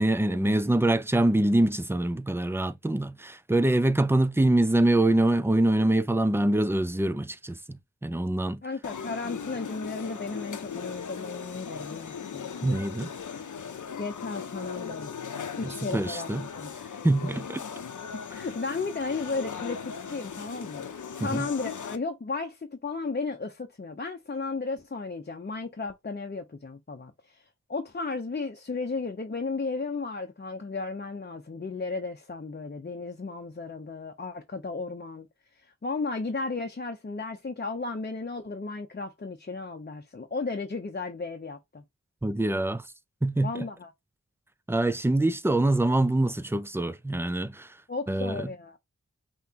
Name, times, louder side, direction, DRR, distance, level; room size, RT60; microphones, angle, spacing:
voice 1, 0.0-8.6 12.6-13.1 15.6-16.5 17.0-17.6 21.2-21.5 42.2-42.8 43.2-43.7 44.7-47.8 48.1-48.5, right 1 dB, 10° right, 0.5 m, -25 dB
voice 2, 8.6-12.5 14.0-15.1 15.6-16.7 18.3-27.4 27.7-35.3 35.8-41.8 43.4-43.9 47.9-48.8, left 3 dB, 35° left, 0.7 m, -34 dB
sound 1, 8.8-22.0, left 6 dB, 80° left, 0.7 m, -38 dB
5.7 x 3.0 x 2.9 m
wide cardioid pair, 65°, 30 cm